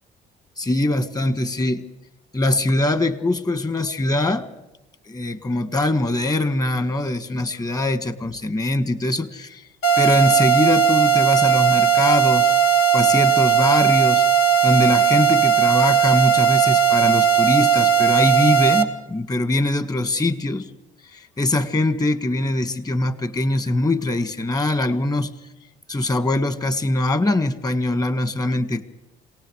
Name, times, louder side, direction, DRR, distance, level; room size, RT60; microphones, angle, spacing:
voice 1, 0.6-1.8 2.3-4.5 5.1-9.7 10.0-12.5 12.9-14.3 14.6-20.7 21.1-25.3 25.9-28.9, left 2 dB, 20° left, 13 dB, 1.8 m, -22 dB
sound 1, 9.8-18.8, right 8 dB, 70° left, 3.0 m, -17 dB
27.0 x 19.0 x 6.4 m, 0.95 s
cardioid pair, 110°, 17 cm